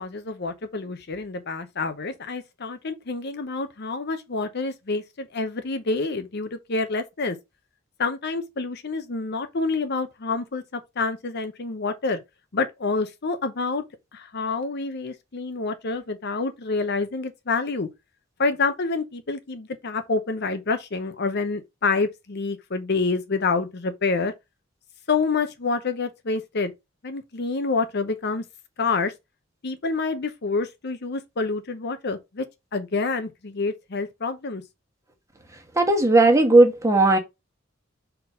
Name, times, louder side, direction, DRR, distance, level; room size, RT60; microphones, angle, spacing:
voice 1, 0.0-7.4 8.0-12.2 12.5-13.8 14.1-17.9 18.4-24.3 25.1-26.7 27.0-28.4 28.8-29.1 29.6-32.4 32.7-34.6, left 4 dB, 55° left, 0.8 m, -27 dB
voice 2, 35.8-37.2, right 2 dB, 15° right, 1.4 m, -16 dB
4.4 x 4.0 x 5.4 m
head